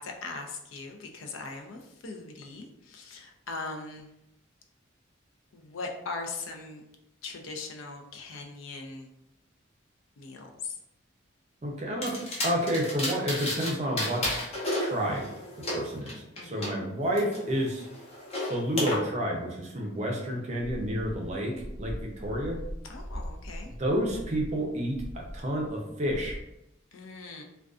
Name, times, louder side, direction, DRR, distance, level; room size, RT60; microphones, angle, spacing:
voice 1, 0.0-4.1 5.5-6.8 7.2-9.1 10.2-10.8 16.4-16.7 22.8-23.7 26.9-27.4, left 3 dB, 90° left, 3 dB, 0.4 m, -40 dB
voice 2, 11.6-14.2 14.8-15.2 15.7-16.1 16.4-17.9 18.5-22.6 23.6-26.4, equal, 35° right, 0 dB, 0.5 m, -30 dB
sound 1, 12.0-13.7 14.0-16.7 17.1-19.0, left 1 dB, 30° left, 0.6 m, -32 dB
sound 2, 21.4-25.8 26.0-26.4, equal, 65° left, 1.1 m, -40 dB
2.4 x 2.2 x 2.3 m, 0.86 s
head